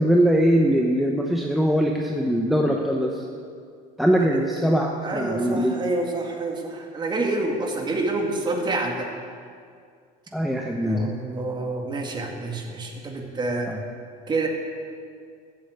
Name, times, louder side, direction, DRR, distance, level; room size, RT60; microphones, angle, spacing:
voice 1, 0.0-3.2 4.0-5.8 10.3-11.1 13.7-13.8, equal, ahead, 0 dB, 0.9 m, -21 dB
voice 2, 5.0-9.1 10.8-13.7 14.3-14.5, right 2 dB, 25° right, 2 dB, 2.0 m, -28 dB
14.0 x 8.2 x 8.0 m, 2.2 s
cardioid pair, 140°, 18 cm